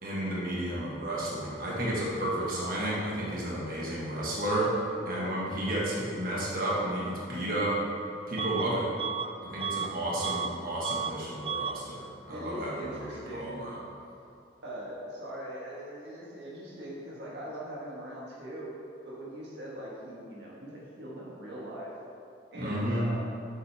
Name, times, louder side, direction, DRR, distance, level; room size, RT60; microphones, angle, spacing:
voice 1, 0.0-4.8 5.0-7.8 8.3-8.9 9.4-13.8 22.5-23.1, right 1 dB, 55° right, -5 dB, 1.6 m, -32 dB
Bus / Alarm, 8.4-8.7 9.0-10.6 10.8-11.2 11.4-11.8, right 6 dB, 30° right, 0.3 m, -33 dB
voice 2, 12.3-13.6 14.6-18.7 19.0-21.9 22.5-23.4, right 1 dB, 85° right, -5 dB, 1.5 m, -41 dB
7.9 x 7.1 x 3.5 m, 2.6 s
head